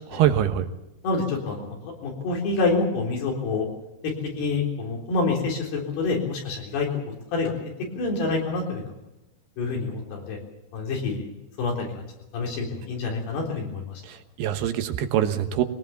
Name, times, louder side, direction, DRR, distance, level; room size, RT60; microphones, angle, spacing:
voice 1, 0.1-0.7 14.0-15.6, right 10 dB, 85° right, 8 dB, 3.3 m, -24 dB
voice 2, 1.0-3.7 4.0-6.9 7.3-7.5 8.0-8.9 9.6-10.4 10.7-11.2 11.6-11.9 12.3-14.0, left 3 dB, 85° left, 0 dB, 5.8 m, -27 dB
22.0 x 18.5 x 7.1 m, 0.95 s
omnidirectional pair, 4.6 m